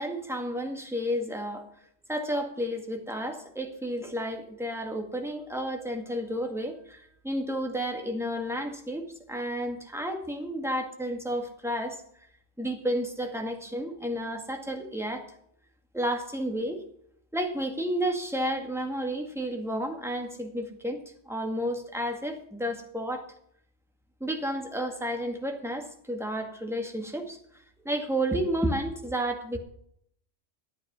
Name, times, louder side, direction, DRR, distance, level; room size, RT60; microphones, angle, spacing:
voice 1, 0.0-1.7 2.1-12.0 12.6-15.2 15.9-16.8 17.3-23.2 24.2-27.4 27.8-29.6, equal, ahead, 3 dB, 2.0 m, -31 dB
14.0 x 8.8 x 6.1 m, 0.67 s
omnidirectional pair, 1.3 m